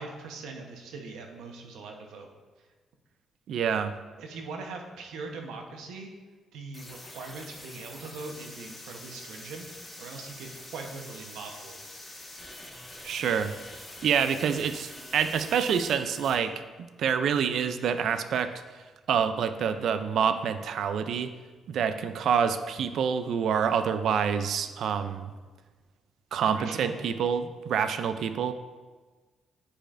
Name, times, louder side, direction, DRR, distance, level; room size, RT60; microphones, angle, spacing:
voice 1, 0.0-2.3 4.2-6.1 6.5-11.8 26.5-26.9, right 3 dB, 85° right, 3 dB, 0.9 m, -41 dB
voice 2, 3.5-4.0 13.0-13.5 14.0-16.5 17.0-18.5 19.1-21.3 21.7-25.3 26.3-28.5, right 7 dB, 70° right, 10 dB, 0.4 m, -27 dB
sound 1, 6.7-16.4, left 1 dB, 15° left, 1.5 m, -45 dB
9.8 x 5.0 x 2.5 m, 1.3 s
cardioid pair, 90°, 0 cm